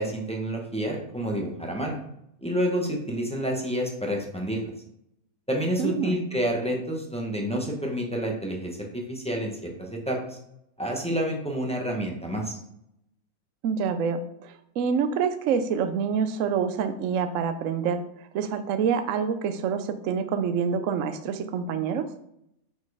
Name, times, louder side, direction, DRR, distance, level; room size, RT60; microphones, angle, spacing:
voice 1, 0.0-2.0 2.4-4.7 5.5-10.4 10.8-12.6, equal, 5° left, 0 dB, 0.6 m, -29 dB
voice 2, 5.8-6.2 13.6-22.1, right 6 dB, 70° right, 9 dB, 0.8 m, -27 dB
5.1 x 4.3 x 4.8 m, 0.77 s
omnidirectional pair, 1.7 m